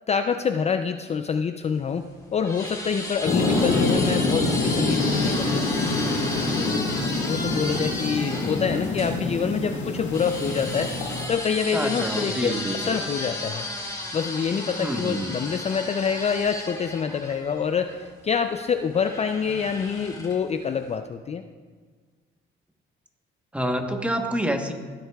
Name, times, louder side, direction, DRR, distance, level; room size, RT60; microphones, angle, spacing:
voice 1, 0.1-5.7 6.5-6.9 7.2-10.9 11.3-13.7 14.1-21.4, left 6 dB, 35° left, 8 dB, 0.4 m, -26 dB
sound 1, 1.8-9.2 10.1-18.0 18.9-20.5, left 2 dB, 15° left, 2.0 m, -34 dB
sound 2, 3.2-11.3, left 2 dB, 65° left, 2.1 m, -26 dB
voice 2, 3.4-3.9 7.5-7.8 11.7-12.9 14.8-15.4 23.5-24.7, equal, 5° right, 4 dB, 1.1 m, -28 dB
16.0 x 7.9 x 2.3 m, 1.5 s
cardioid pair, 90°, 20 cm